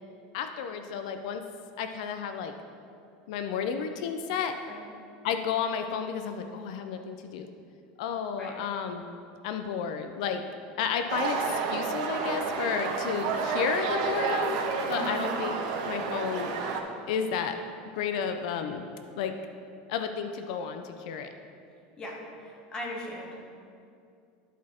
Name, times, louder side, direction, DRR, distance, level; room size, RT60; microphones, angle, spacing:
voice 1, 0.3-1.4 1.8-2.5 3.3-4.5 5.2-7.5 8.0-9.0 9.4-10.4 10.8-14.6 14.9-15.5 15.9-16.5 17.1-17.6 17.9-18.9 19.2-19.3 19.9-21.3, left 7 dB, 70° left, 7 dB, 0.5 m, -32 dB
sound 1, 11.1-16.8, right 4 dB, 70° right, 0.8 m, -30 dB
voice 2, 22.0-23.4, left 1 dB, 20° left, -1 dB, 1.1 m, -39 dB
11.0 x 4.1 x 4.3 m, 2.4 s
supercardioid pair, 155°, 4 cm